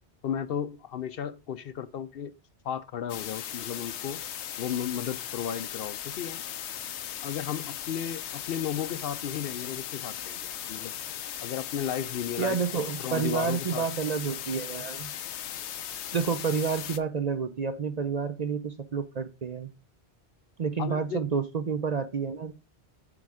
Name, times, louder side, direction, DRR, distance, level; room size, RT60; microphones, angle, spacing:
voice 1, 0.2-2.3 2.6-4.2 4.6-6.4 7.2-10.9 11.4-12.6 13.0-13.8 20.8-21.3, left 9 dB, 65° left, 0.7 m, -34 dB
sound 1, 3.1-17.0, left 10 dB, 85° left, 0.9 m, -38 dB
voice 2, 12.4-15.1 16.1-19.7 20.6-22.5, right 6 dB, 45° right, 0.6 m, -29 dB
8.6 x 3.6 x 4.8 m
omnidirectional pair, 1.1 m